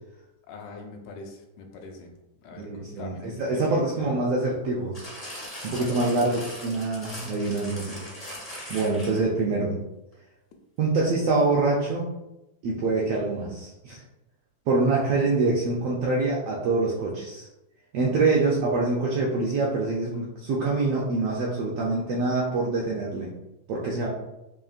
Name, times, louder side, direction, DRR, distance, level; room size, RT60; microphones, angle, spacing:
voice 1, 0.5-2.1 2.4-4.2 5.8-6.4 7.7-8.2, left 3 dB, 85° left, 3 dB, 2.0 m, -42 dB
voice 2, 2.6-5.1 5.6-8.0 8.7-9.8 10.8-12.0 12.6-14.0 14.7-17.5 17.9-23.3 23.7-24.1, right 3 dB, 80° right, -4 dB, 1.4 m, -25 dB
sound 1, 4.9-9.4 10.1-10.2, equal, 65° left, 0.3 m, -40 dB
5.0 x 2.8 x 2.4 m, 0.92 s
omnidirectional pair, 3.3 m